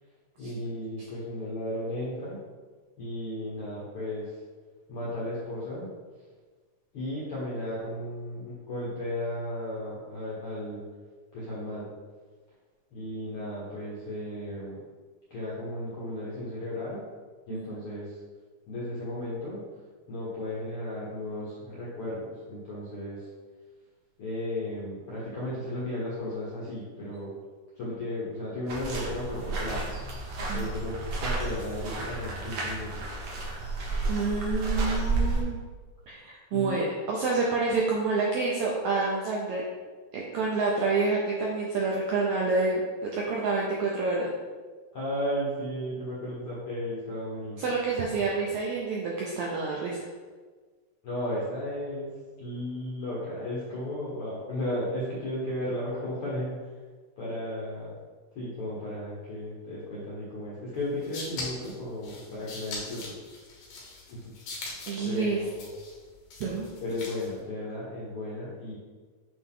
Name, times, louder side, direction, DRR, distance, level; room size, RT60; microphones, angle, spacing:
voice 1, 0.4-2.4 3.0-4.3 4.9-5.9 6.9-10.8 11.3-11.9 12.9-14.8 15.3-17.0 17.5-18.2 18.7-19.6 20.1-23.3 24.2-27.3 27.8-29.9 30.5-33.0 36.5-36.9 44.9-47.6 51.0-56.6 57.2-57.9 58.3-63.1 64.1-64.3 65.0-65.7 66.8-68.7, left 1 dB, 65° left, -7 dB, 1.4 m, -34 dB
sound 1, 28.7-35.4, right 2 dB, 60° right, 2.1 m, -31 dB
voice 2, 34.1-35.6 36.1-39.6 40.1-42.8 43.1-44.3 47.6-50.0 64.9-65.4 66.4-66.7, right 3 dB, 80° right, -3 dB, 1.6 m, -28 dB
sound 2, 60.8-67.4, left 3 dB, 90° left, 3.1 m, -41 dB
8.8 x 3.0 x 3.7 m, 1.4 s
omnidirectional pair, 4.0 m